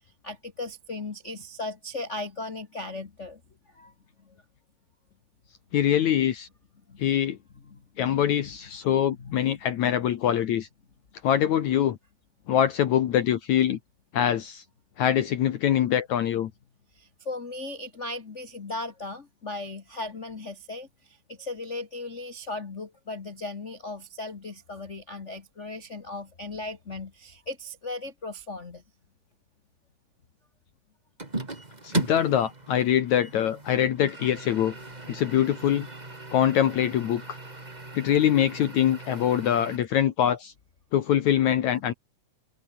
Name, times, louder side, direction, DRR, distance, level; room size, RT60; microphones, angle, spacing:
voice 1, 0.2-3.4 3.7-3.9 4.2-4.4 6.9-7.0 7.5-8.3 9.2-9.4 16.9-28.8, left 2 dB, 80° left, 0.6 m, -37 dB
voice 2, 5.7-6.5 7.0-7.4 8.0-10.7 11.2-12.0 12.5-13.8 14.1-14.6 15.0-16.5 31.8-34.7 35.1-35.9 36.3-37.2 37.9-40.5 40.9-41.9, left 10 dB, 65° left, 2.4 m, -24 dB
sound 1, 31.2-39.8, right 2 dB, 15° right, 2.0 m, -37 dB
open air
omnidirectional pair, 3.9 m